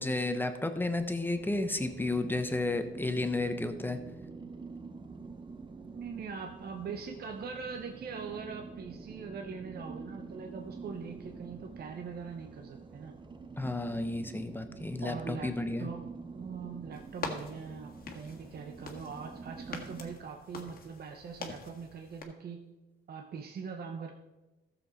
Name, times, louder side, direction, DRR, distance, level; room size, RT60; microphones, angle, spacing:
voice 1, 0.0-4.0 13.6-15.9, left 2 dB, 10° left, 8 dB, 1.0 m, -32 dB
sound 1, 1.3-20.2, right 4 dB, 25° right, 0.8 m, -47 dB
voice 2, 5.9-13.2 15.0-15.5 15.8-16.0 16.4-22.6 23.1-24.1, right 6 dB, 50° right, 4 dB, 0.9 m, -42 dB
sound 2, 16.9-22.2, left 4 dB, 45° left, 1.7 m, -45 dB
14.0 x 7.0 x 4.1 m, 1.1 s
cardioid pair, 90°, 20 cm